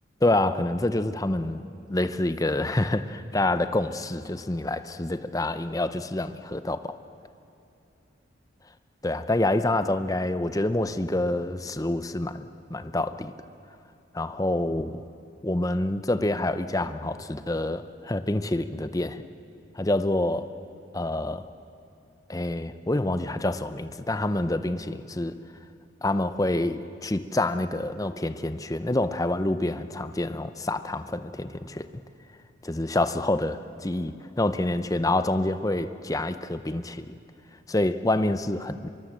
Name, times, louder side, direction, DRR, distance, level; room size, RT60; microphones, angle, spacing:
voice 1, 0.2-1.6 1.9-6.9 9.0-13.3 14.1-15.0 15.4-19.2 19.7-20.5 20.9-21.5 22.3-25.3 26.0-31.9 32.7-37.2 37.7-38.9, left 1 dB, 15° left, 11 dB, 0.6 m, -27 dB
25.0 x 23.0 x 7.6 m, 2.7 s
head